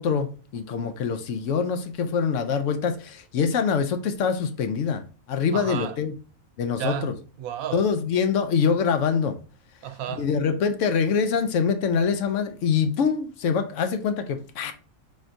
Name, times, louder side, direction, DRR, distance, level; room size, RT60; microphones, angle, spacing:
voice 1, 0.0-5.0 5.3-6.1 6.6-7.1 7.7-9.4 10.2-14.7, left 6 dB, 70° left, 0.9 m, -24 dB
voice 2, 5.5-6.0 6.7-7.1 7.4-7.9 9.8-10.3, right 10 dB, 90° right, 1.0 m, -32 dB
4.2 x 2.6 x 4.5 m
omnidirectional pair, 1.5 m